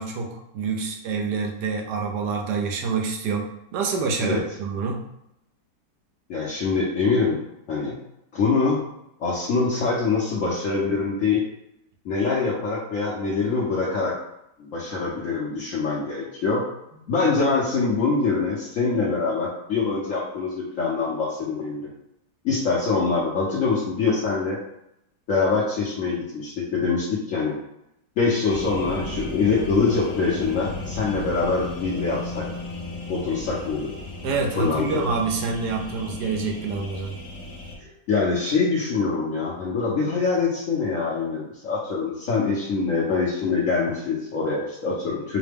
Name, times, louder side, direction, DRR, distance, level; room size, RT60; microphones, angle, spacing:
voice 1, 0.0-5.0 34.2-37.2, right 4 dB, 75° right, 0 dB, 1.3 m, -27 dB
voice 2, 6.3-7.4 7.7-8.0 8.3-8.8 9.2-11.4 12.0-14.1 14.6-16.6 17.1-21.9 22.4-24.6 25.3-27.5 28.2-32.4 33.1-33.9 34.5-34.8 37.8-45.4, left 4 dB, 60° left, -5 dB, 1.0 m, -24 dB
sound 1, 28.5-37.8, left 2 dB, 35° left, 0.5 m, -35 dB
4.8 x 2.1 x 3.4 m, 0.82 s
omnidirectional pair, 1.9 m